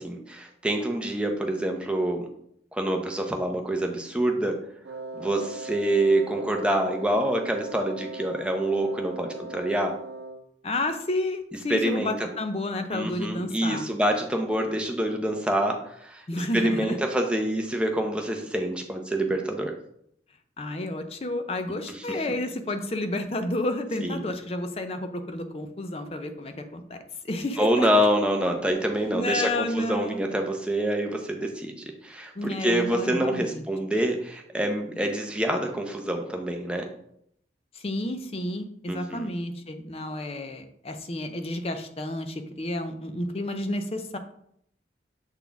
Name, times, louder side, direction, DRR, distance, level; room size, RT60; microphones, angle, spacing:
voice 1, 0.0-2.3 2.7-4.6 5.2-9.9 11.7-12.1 12.9-16.2 16.5-19.7 21.9-22.0 24.0-24.2 27.6-31.8 32.0-36.9 38.9-39.3, right 1 dB, 5° right, 3 dB, 0.6 m, -26 dB
Wind instrument woodwind instrument, 4.8-10.6, right 2 dB, 70° right, 0.6 m, -39 dB
voice 2, 10.6-13.9 16.3-17.0 20.6-27.0 27.2-27.9 29.1-30.2 32.4-33.6 37.7-44.2, left 1 dB, 35° left, 7 dB, 0.5 m, -31 dB
7.2 x 4.1 x 3.4 m, 0.71 s
head